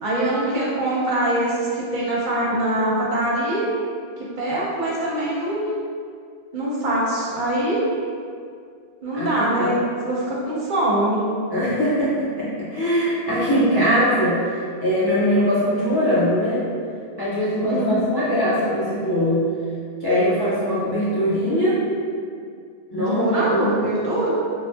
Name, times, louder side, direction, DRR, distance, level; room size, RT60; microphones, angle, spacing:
voice 1, 0.0-3.7 4.2-5.6 6.5-7.9 9.0-11.3 17.7-18.1 22.9-24.3, right 1 dB, 60° right, -5 dB, 0.7 m, -23 dB
voice 2, 9.1-9.7 11.5-16.6 17.2-19.5 20.0-21.8 22.9-23.3 23.5-23.8, equal, 35° left, -10 dB, 0.4 m, -21 dB
3.3 x 2.0 x 2.5 m, 2.3 s
omnidirectional pair, 1.0 m